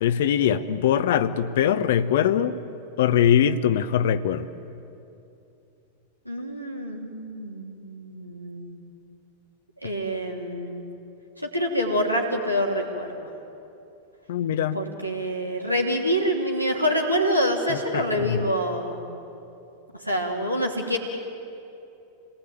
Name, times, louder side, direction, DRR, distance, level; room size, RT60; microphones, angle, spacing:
voice 1, 0.0-2.6 3.0-4.5 14.3-14.8 17.7-18.4, left 9 dB, 55° left, 14 dB, 1.0 m, -22 dB
voice 2, 6.2-8.7 9.8-10.9 11.4-13.3 14.7-19.1 20.0-21.0, equal, 90° right, 1 dB, 3.1 m, -26 dB
27.5 x 19.0 x 9.3 m, 2.8 s
figure-of-eight pair, 90°, 0 cm